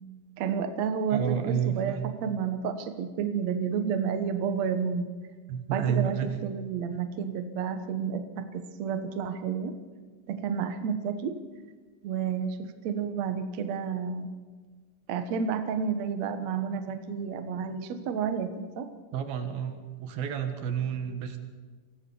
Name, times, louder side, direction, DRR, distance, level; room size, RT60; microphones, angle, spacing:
voice 1, 0.4-5.1 5.7-9.7 10.3-11.3 12.0-14.3 15.1-18.9, right 6 dB, 60° right, 8 dB, 2.0 m, -31 dB
voice 2, 1.1-2.1 5.5-6.4 19.1-21.4, right 8 dB, 85° right, 7 dB, 3.5 m, -30 dB
24.0 x 15.5 x 7.1 m, 1.4 s
omnidirectional pair, 4.1 m